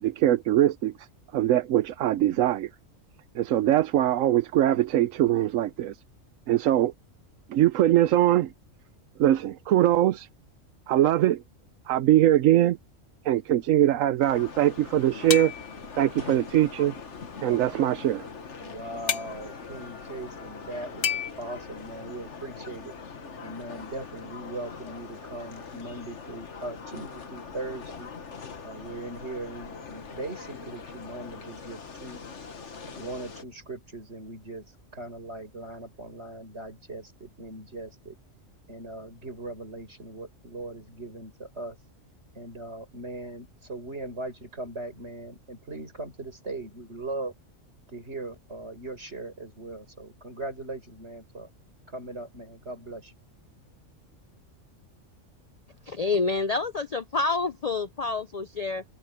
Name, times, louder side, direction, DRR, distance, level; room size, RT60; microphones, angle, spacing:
voice 1, 0.0-0.9 1.3-2.7 3.3-5.9 6.5-6.9 7.5-8.5 9.2-10.3 10.9-11.4 11.9-12.8 13.2-15.5 16.0-16.9 17.4-18.3, right 12 dB, 90° right, 1.1 m, -22 dB
sound 1, 14.2-33.4, left 5 dB, 65° left, 1.7 m, -42 dB
sound 2, 15.3-15.8 19.1-19.3 21.0-21.3, left 8 dB, 90° left, 1.7 m, -28 dB
voice 2, 18.6-23.0 23.4-28.1 28.6-32.2 33.0-38.2 38.7-41.8 42.3-47.3 47.9-51.5 51.9-53.1, right 2 dB, 55° right, 6.7 m, -39 dB
voice 3, 55.9-58.8, left 3 dB, 45° left, 0.5 m, -28 dB
open air
omnidirectional pair, 1.3 m